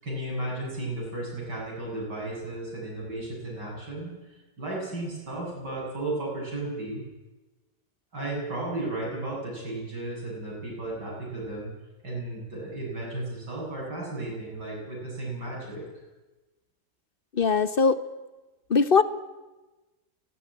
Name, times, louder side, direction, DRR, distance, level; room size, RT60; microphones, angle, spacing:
voice 1, 0.0-4.1 4.6-7.0 8.1-11.7 12.0-15.8, right 2 dB, 85° right, -3 dB, 8.4 m, -34 dB
voice 2, 17.3-18.0 18.7-19.0, left 5 dB, 40° left, 13 dB, 0.8 m, -20 dB
17.5 x 17.5 x 9.9 m, 1.1 s
omnidirectional pair, 1.8 m